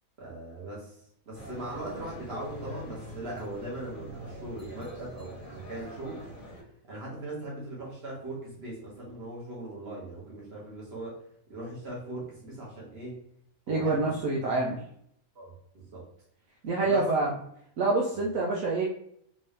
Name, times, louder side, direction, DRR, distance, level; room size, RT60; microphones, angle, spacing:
voice 1, 0.2-0.9 1.3-6.2 6.9-11.2 11.5-13.2 13.7-14.0 15.3-16.0 16.8-17.0, right 2 dB, 45° right, -4 dB, 1.6 m, -39 dB
sound 1, 1.3-6.6, equal, 40° left, 1.2 m, -43 dB
voice 2, 13.7-14.8 16.6-17.4 17.8-18.8, right 3 dB, 75° right, -3 dB, 1.1 m, -26 dB
3.8 x 2.6 x 3.3 m, 0.69 s
omnidirectional pair, 1.5 m